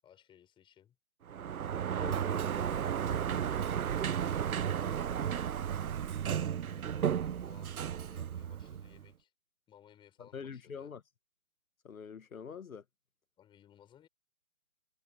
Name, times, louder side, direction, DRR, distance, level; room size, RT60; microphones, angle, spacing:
voice 1, 0.0-1.0 2.0-3.0 3.3-5.9 6.8-9.3 9.7-10.9 13.4-14.1, left 10 dB, 10° left, 6.2 m, -61 dB
Sliding door, 1.3-9.1, right 9 dB, 70° right, 0.7 m, -34 dB
voice 2, 10.2-11.0 11.8-12.8, left 6 dB, 65° left, 1.4 m, -44 dB
figure-of-eight pair, 150°, 44 cm